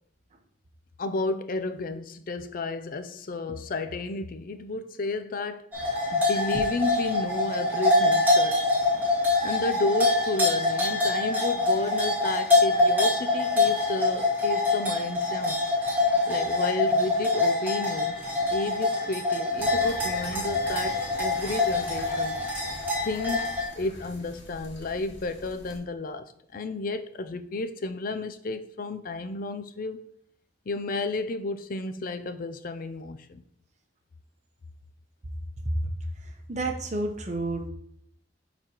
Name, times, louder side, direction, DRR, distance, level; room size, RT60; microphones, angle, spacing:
voice 1, 1.0-5.7 6.1-8.8 9.4-15.6 16.3-22.4 23.0-30.0 30.7-33.4, left 2 dB, 50° left, 0.5 m, -32 dB
sound 1, 5.7-23.6, left 2 dB, 10° right, 2.2 m, -25 dB
sound 2, 19.6-25.8, left 1 dB, 70° left, 2.1 m, -44 dB
voice 2, 36.5-37.7, right 2 dB, 40° right, 0.9 m, -30 dB
11.0 x 4.1 x 3.0 m
head